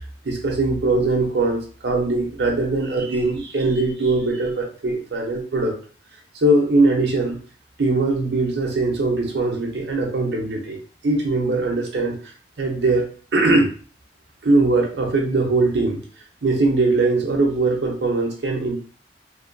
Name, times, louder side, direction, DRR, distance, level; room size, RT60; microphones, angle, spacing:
voice 1, 0.2-5.8 6.3-7.4 7.8-10.8 11.0-12.2 12.6-13.7 14.4-16.0 16.4-18.8, right 2 dB, 75° right, 1 dB, 0.6 m, -21 dB
2.6 x 2.2 x 2.5 m, 0.41 s
head